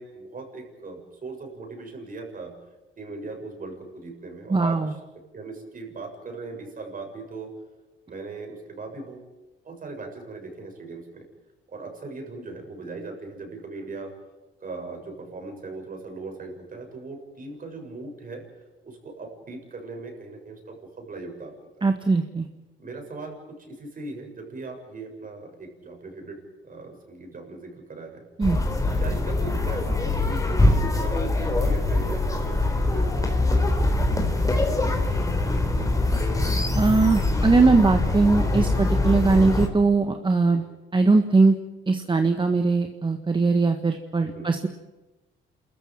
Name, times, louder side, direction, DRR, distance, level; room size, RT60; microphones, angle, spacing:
voice 1, 0.0-2.6 3.0-5.0 5.3-7.5 8.1-9.3 9.6-11.2 11.7-14.1 14.6-18.4 18.8-21.9 22.8-28.3 29.0-35.8 40.5-40.6 44.2-44.5, right 3 dB, 45° right, 3 dB, 7.1 m, -39 dB
voice 2, 4.5-4.9 21.8-22.5 28.4-28.6 36.7-40.6 40.9-41.5 41.9-44.7, right 3 dB, 25° right, 6 dB, 1.6 m, -20 dB
sound 1, 28.4-39.7, left 2 dB, 15° left, 3.8 m, -23 dB
28.5 x 14.0 x 9.0 m, 1.1 s
cardioid pair, 90°, 20 cm